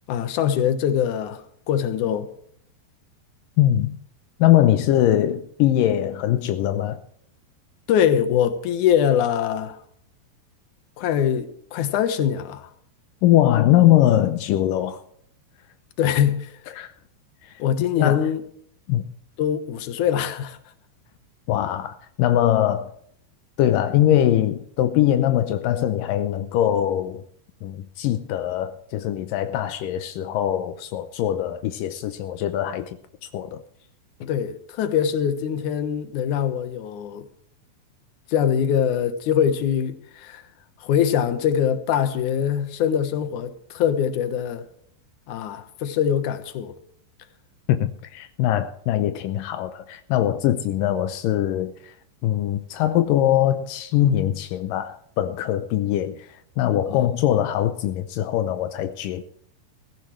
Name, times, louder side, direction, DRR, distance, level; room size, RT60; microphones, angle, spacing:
voice 1, 0.1-2.3 7.9-9.8 11.0-12.7 16.0-16.5 17.6-18.4 19.4-20.6 34.2-37.3 38.3-40.4 40.8-44.7 45.3-46.7 56.9-57.0, left 9 dB, 65° left, 2.1 m, -23 dB
voice 2, 3.6-4.0 4.4-7.0 13.2-15.0 16.7-16.9 17.4-17.5 18.0-18.3 18.9-19.0 21.5-22.9 23.6-27.2 27.6-33.0 33.3-33.6 47.7-51.9 52.2-59.2, left 12 dB, 85° left, 1.9 m, -22 dB
16.5 x 16.0 x 3.2 m
omnidirectional pair, 4.8 m